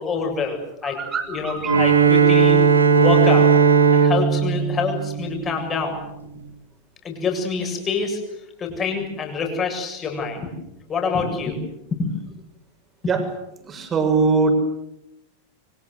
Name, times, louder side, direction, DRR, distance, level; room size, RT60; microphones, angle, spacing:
voice 1, 0.0-1.0 1.3-2.6 3.0-3.5 3.9-6.0 7.0-8.2 8.6-10.5 10.9-11.6 11.9-12.1, left 4 dB, 25° left, 3 dB, 7.7 m, -26 dB
voice 2, 0.8-1.8 13.1-13.2 13.6-14.5, right 4 dB, 25° right, 5 dB, 6.8 m, -22 dB
Bowed string instrument, 1.6-5.9, right 6 dB, 75° right, 3.4 m, -17 dB
28.0 x 25.0 x 8.0 m, 0.84 s
figure-of-eight pair, 90°, 0 cm